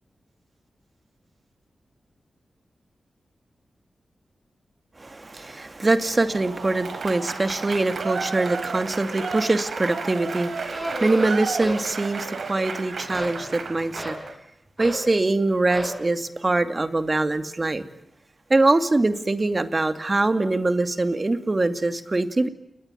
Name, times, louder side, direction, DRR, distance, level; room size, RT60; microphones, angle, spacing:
voice 1, 5.0-14.2 14.8-17.8 18.5-22.5, right 2 dB, 35° right, 10 dB, 2.4 m, -23 dB
Applause / Crowd, 6.2-14.3, right 4 dB, 75° right, 4.7 m, -33 dB
sound 1, 10.7-11.9 12.2-12.7 13.1-14.3 14.8-15.1 15.7-16.0, right 1 dB, 15° right, 7.0 m, -33 dB
30.0 x 20.5 x 9.2 m, 0.75 s
cardioid pair, 60°, 0 cm